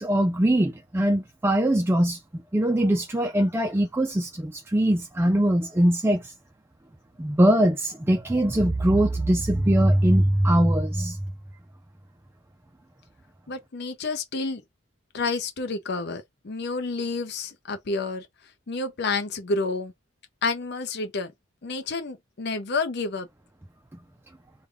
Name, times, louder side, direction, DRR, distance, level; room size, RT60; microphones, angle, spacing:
voice 1, 0.0-2.2 2.5-6.3 7.2-11.2, right 1 dB, 10° right, 0.3 m, -22 dB
voice 2, 13.5-14.6 15.1-18.3 18.7-19.9 20.4-21.3 21.6-23.3, left 3 dB, 55° left, 0.6 m, -29 dB
3.3 x 2.3 x 3.3 m
head